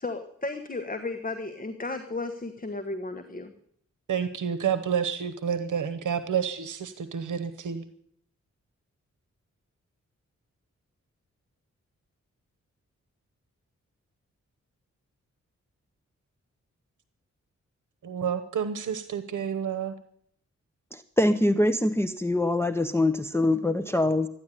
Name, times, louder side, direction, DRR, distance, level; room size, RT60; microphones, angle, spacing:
voice 1, 0.0-3.5, left 3 dB, 30° left, 8 dB, 1.3 m, -34 dB
voice 2, 4.1-7.8 18.0-20.0, right 7 dB, 85° right, 11 dB, 0.9 m, -29 dB
voice 3, 20.9-24.3, left 1 dB, 10° left, 8 dB, 0.8 m, -24 dB
13.5 x 10.5 x 9.9 m, 0.68 s
cardioid pair, 70°, 30 cm